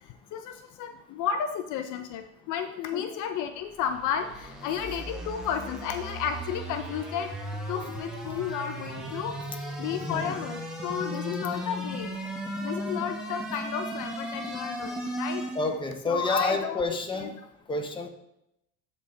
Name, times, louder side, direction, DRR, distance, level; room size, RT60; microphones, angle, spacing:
voice 1, 0.3-7.3 7.7-9.4 9.8-12.2 12.5-15.4 16.1-16.8 17.2-17.3, left 8 dB, 60° left, 7 dB, 0.7 m, -32 dB
sound 1, 3.6-15.8, equal, ahead, 1.7 m, -36 dB
voice 2, 15.5-17.3 17.7-18.1, left 2 dB, 15° left, 3 dB, 1.2 m, -29 dB
12.5 x 4.2 x 3.5 m, 0.81 s
supercardioid pair, 120°, 35 cm